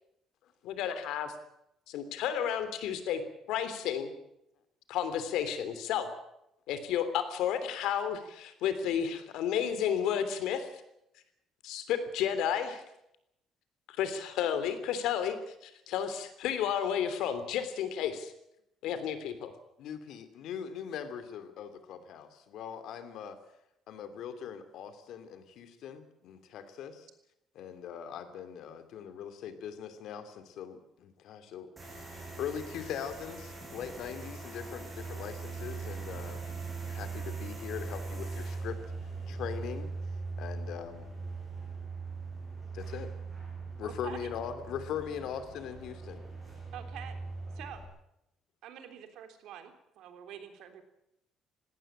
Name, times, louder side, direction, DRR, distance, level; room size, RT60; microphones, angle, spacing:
voice 1, 0.6-1.3 1.9-3.2 3.5-4.1 4.9-6.1 6.7-10.7 11.6-12.8 13.9-15.4 15.6-18.3 18.8-19.5, left 9 dB, 85° left, 11 dB, 3.1 m, -32 dB
voice 2, 19.8-23.4 23.9-27.1 27.5-31.7 32.0-32.1 32.4-36.5 36.9-38.8 39.3-39.9 40.4-41.1 42.7-43.1 43.8-46.2, left 8 dB, 65° left, 10 dB, 2.7 m, -41 dB
sound 1, 31.8-47.8, right 4 dB, 15° right, 8.0 m, -40 dB
voice 3, 43.8-44.3 46.7-47.2 47.5-47.8 48.6-50.8, right 10 dB, 75° right, 7 dB, 3.4 m, -46 dB
19.5 x 17.0 x 8.9 m, 0.82 s
cardioid pair, 165°, 0 cm